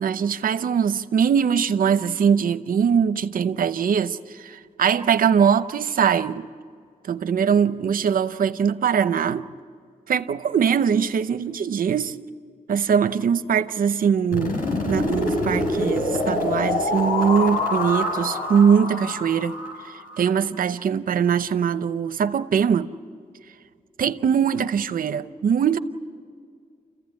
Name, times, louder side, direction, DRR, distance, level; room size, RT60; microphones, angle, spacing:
voice 1, 0.0-6.5 7.1-9.5 10.1-12.2 12.7-19.6 19.9-22.9 24.0-25.8, right 7 dB, 80° right, 0.7 m, -22 dB
sound 1, 14.3-20.2, left 2 dB, 85° left, 5.4 m, -25 dB
28.5 x 15.5 x 9.5 m
cardioid pair, 70°, 14 cm